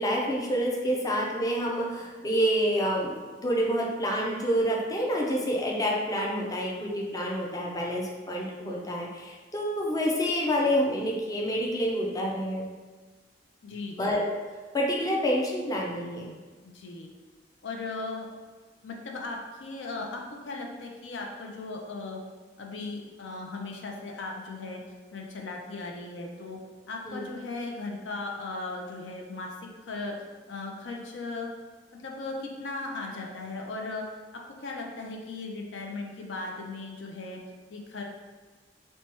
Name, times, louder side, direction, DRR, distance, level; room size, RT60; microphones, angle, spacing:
voice 1, 0.0-12.7 14.0-14.2 14.7-16.3 27.1-27.2, equal, 20° left, -2 dB, 0.5 m, -28 dB
voice 2, 13.6-14.1 16.6-17.1 17.6-18.3 18.8-22.2 22.6-24.8 25.1-26.6 26.9-29.5 29.8-30.2 30.5-31.5 31.9-37.4 37.7-38.0, left 3 dB, 85° left, 1 dB, 0.5 m, -37 dB
4.2 x 2.2 x 2.9 m, 1.3 s
head